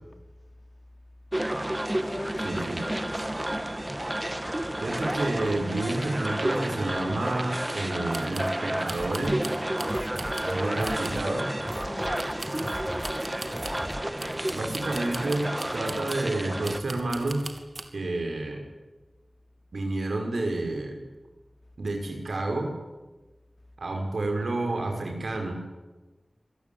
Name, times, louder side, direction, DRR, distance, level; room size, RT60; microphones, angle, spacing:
sound 1, 1.3-16.8, right 1 dB, 20° right, 1.5 m, -31 dB
voice 1, 1.8-3.4 11.7-13.2, left 1 dB, 40° left, 4 dB, 4.1 m, -41 dB
voice 2, 2.4-2.8 4.8-9.4 10.4-11.4 14.5-17.4 17.9-18.6 19.7-21.0 21.8-22.7 23.8-25.5, right 2 dB, 85° right, 3 dB, 5.8 m, -29 dB
sound 2, 5.1-5.2 5.4-5.5 5.9-6.0 6.5-6.6 8.1-8.6 8.9-10.6 10.8-11.3 12.2-13.9 14.2-16.3 16.6-17.9, right 2 dB, 65° right, 2.8 m, -41 dB
sound 3, 8.8-14.3, equal, 10° left, 1.5 m, -42 dB
26.0 x 18.0 x 9.5 m, 1.2 s
wide cardioid pair, 50°, 0 cm